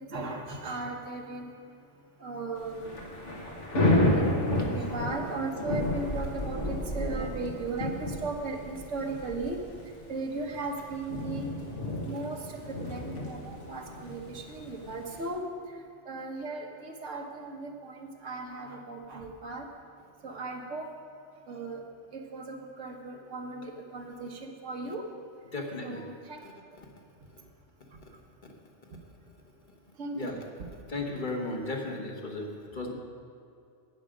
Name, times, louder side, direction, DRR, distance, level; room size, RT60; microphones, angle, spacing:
voice 1, 0.0-1.5 2.2-3.0 3.9-4.2 4.5-9.6 10.1-11.5 12.0-15.8 16.0-19.7 20.2-20.9 21.5-21.8 22.1-25.0 25.8-26.4 30.0-30.4, right 3 dB, 85° right, 2 dB, 1.5 m, -37 dB
Thunder / Rain, 2.6-15.3, left 1 dB, 75° left, 1.9 m, -31 dB
voice 2, 25.5-26.0 26.4-26.5 28.0-28.1 30.1-30.4 30.9-32.9, left 2 dB, 45° left, 1 dB, 1.3 m, -35 dB
12.0 x 8.9 x 5.0 m, 2.4 s
omnidirectional pair, 1.2 m